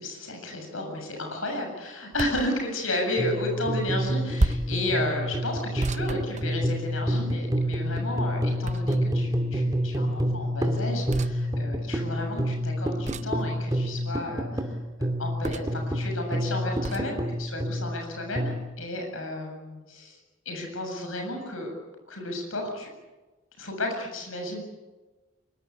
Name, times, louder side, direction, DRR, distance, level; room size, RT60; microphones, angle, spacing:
voice 1, 0.0-20.2 20.5-21.7 22.1-22.9 23.6-24.6, left 1 dB, 80° left, 3 dB, 7.4 m, -33 dB
sound 1, 2.1-2.5 4.4-4.8 5.8-7.0 8.6-9.2 11.1-11.4 13.0-13.4 15.4-15.8 16.8-17.1, right 2 dB, 35° right, 0.7 m, -31 dB
sound 2, 3.2-18.6, equal, 20° right, 2.2 m, -28 dB
24.0 x 23.0 x 8.5 m, 1.2 s
head